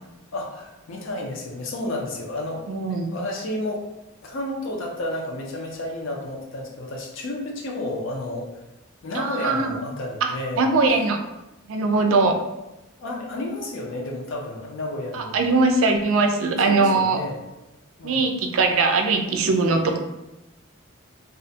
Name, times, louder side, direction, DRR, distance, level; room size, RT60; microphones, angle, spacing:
voice 1, 0.3-3.8 4.2-8.5 9.0-10.7 13.0-15.7 16.7-17.4 18.0-18.2, left 1 dB, 65° left, 0 dB, 0.5 m, -31 dB
voice 2, 2.7-3.0 9.1-9.7 10.2-11.2 11.7-12.4 15.1-17.2 18.0-20.0, right 3 dB, 75° right, 5 dB, 0.3 m, -21 dB
2.4 x 2.1 x 2.6 m, 0.96 s
head